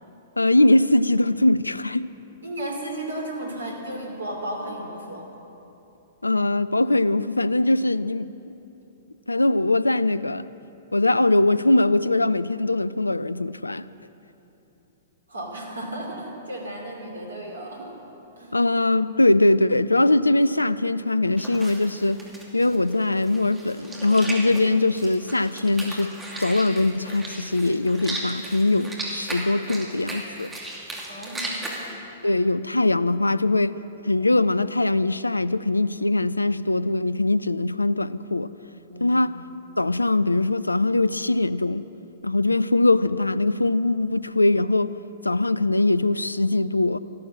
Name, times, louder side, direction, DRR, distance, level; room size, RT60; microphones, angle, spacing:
voice 1, 0.4-2.1 6.2-8.3 9.3-10.5 10.9-13.8 18.5-22.2 22.5-26.1 26.4-30.5 32.2-33.8 34.0-38.5 39.0-39.4 39.8-41.9 42.2-44.9 45.2-47.0, left 2 dB, 80° left, 0.4 m, -21 dB
voice 2, 2.4-5.3 15.3-18.0 18.4-18.6 31.1-31.7 38.9-39.2, right 1 dB, 75° right, 2.8 m, -34 dB
sound 1, 21.4-31.9, right 1 dB, 10° right, 2.7 m, -36 dB
14.0 x 12.5 x 7.3 m
figure-of-eight pair, 110°, 0 cm